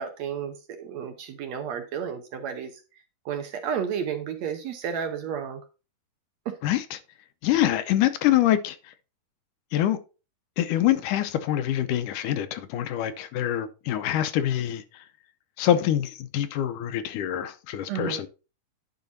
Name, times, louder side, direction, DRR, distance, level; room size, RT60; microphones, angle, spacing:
voice 1, 0.0-2.7 3.3-5.6 6.5-6.6 17.9-18.2, right 7 dB, 65° right, 1.9 m, -32 dB
voice 2, 7.4-8.8 9.7-10.0 10.6-14.8 15.6-18.3, left 12 dB, 80° left, 2.2 m, -25 dB
10.5 x 4.9 x 4.0 m
omnidirectional pair, 3.8 m